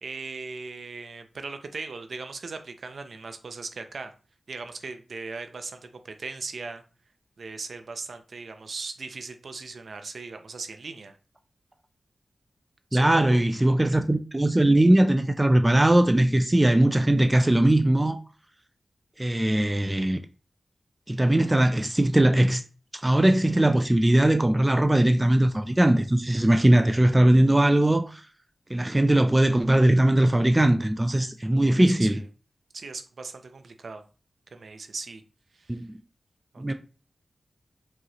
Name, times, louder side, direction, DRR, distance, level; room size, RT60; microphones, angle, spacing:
voice 1, 0.0-4.1 4.5-6.8 7.4-11.2 12.9-13.4 31.7-32.3 32.7-34.0 34.5-35.2 35.5-35.8 36.5-36.7, right 4 dB, 65° right, 0.5 m, -38 dB
voice 2, 12.9-18.2 19.2-20.2 21.1-22.6 23.0-28.2 28.7-32.2 35.7-35.9 36.6-36.7, right 1 dB, 15° right, 0.4 m, -20 dB
4.7 x 3.1 x 2.9 m
wide cardioid pair, 100°, 0 cm